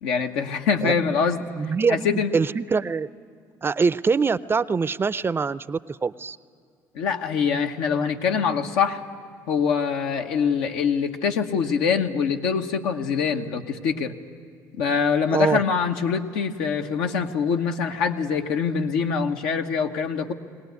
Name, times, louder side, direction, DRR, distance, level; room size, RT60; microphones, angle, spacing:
voice 1, 0.0-1.4 1.9-2.3 6.9-9.0 9.5-14.1 14.8-20.3, left 6 dB, 85° left, 4 dB, 1.1 m, -24 dB
voice 2, 1.4-3.1 3.6-6.4 15.3-15.6, right 5 dB, 25° right, 16 dB, 0.5 m, -24 dB
21.5 x 18.0 x 9.4 m, 2.3 s
supercardioid pair, 75°, 8 cm